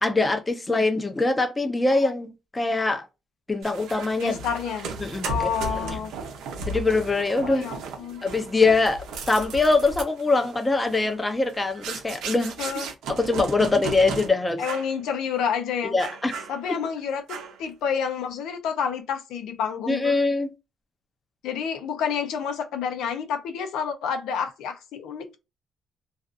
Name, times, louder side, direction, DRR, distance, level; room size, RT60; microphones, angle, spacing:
voice 1, 0.0-3.0 3.5-4.4 5.0-5.5 5.8-6.0 6.7-7.6 8.2-12.6 13.1-14.6 15.9-16.3 19.9-20.5, left 3 dB, 20° left, 0.6 m, -23 dB
sound 1, 3.6-14.3 14.6-15.0 15.3-15.5 16.0-16.9 17.3-17.7, right 3 dB, 90° right, 0.7 m, -35 dB
voice 2, 4.2-4.9 5.3-6.1 7.4-8.2 12.6-12.9 14.6-15.9 16.5-20.2 21.4-25.4, left 7 dB, 90° left, 0.5 m, -29 dB
2.4 x 2.4 x 2.4 m
cardioid pair, 90°, 0 cm